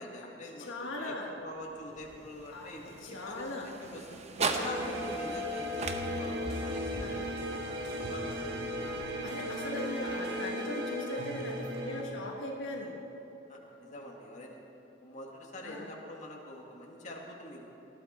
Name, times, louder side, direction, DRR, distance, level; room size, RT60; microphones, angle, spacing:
voice 1, 0.0-4.1 4.5-8.4 8.6-8.8 13.5-14.6 15.0-17.6, left 1 dB, 40° left, -1 dB, 1.8 m, -45 dB
voice 2, 0.7-1.3 2.5-2.7 3.0-3.7 4.6-5.0 7.0-7.3 9.2-12.9 15.6-15.9, left 1 dB, 75° left, 0 dB, 1.4 m, -39 dB
sound 1, 1.4-9.7, right 4 dB, 35° right, 0.8 m, -41 dB
sound 2, 4.4-12.0, equal, 60° right, 1.4 m, -36 dB
19.5 x 12.0 x 4.3 m, 2.9 s
head